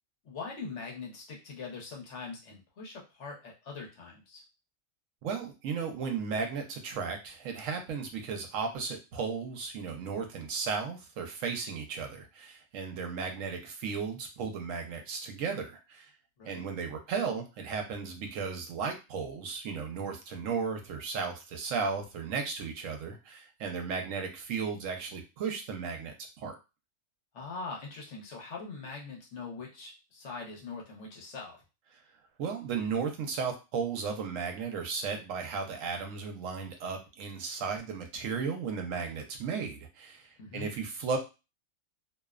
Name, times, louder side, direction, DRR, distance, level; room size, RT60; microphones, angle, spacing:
voice 1, 0.2-4.4 16.4-16.6 27.3-31.6 40.4-40.7, left 4 dB, 70° left, -1 dB, 1.1 m, -42 dB
voice 2, 5.2-16.1 16.4-26.6 32.4-41.2, right 5 dB, 80° right, 3 dB, 1.0 m, -35 dB
2.7 x 2.0 x 2.3 m, 0.28 s
omnidirectional pair, 1.3 m